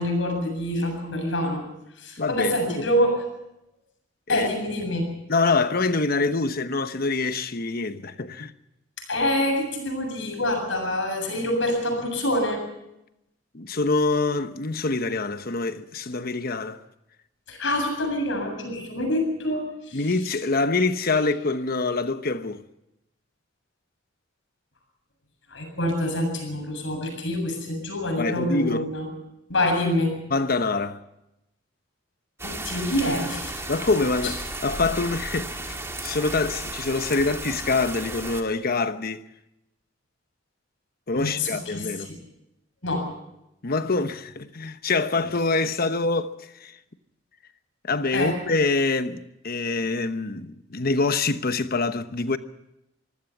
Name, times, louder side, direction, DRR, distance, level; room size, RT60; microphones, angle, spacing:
voice 1, 0.0-1.6 2.0-3.2 4.3-5.1 9.0-12.6 17.5-20.0 25.5-29.1 29.5-30.2 32.4-33.6 34.2-34.3 41.1-42.2 42.8-43.0 48.1-48.4, left 1 dB, 70° left, 7.6 m, -26 dB
voice 2, 2.2-2.9 4.3-4.5 5.3-8.5 13.5-16.8 19.9-22.6 28.2-28.9 30.3-31.0 33.7-39.2 41.1-42.1 43.6-46.7 47.8-52.4, left 3 dB, 50° left, 1.1 m, -25 dB
sound 1, 32.4-38.4, right 2 dB, 15° right, 2.0 m, -34 dB
24.5 x 16.0 x 7.3 m
head